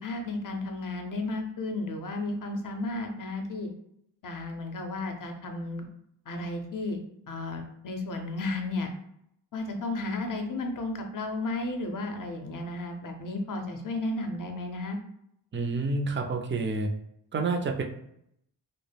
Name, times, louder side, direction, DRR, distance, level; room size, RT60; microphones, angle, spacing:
voice 1, 0.0-3.7 4.2-5.9 6.3-7.0 7.3-8.9 9.5-15.0, left 2 dB, 45° left, 4 dB, 0.6 m, -33 dB
voice 2, 15.5-16.9 17.3-17.8, right 3 dB, 30° right, 3 dB, 0.3 m, -28 dB
2.1 x 2.0 x 3.3 m, 0.75 s
cardioid pair, 60°, 45 cm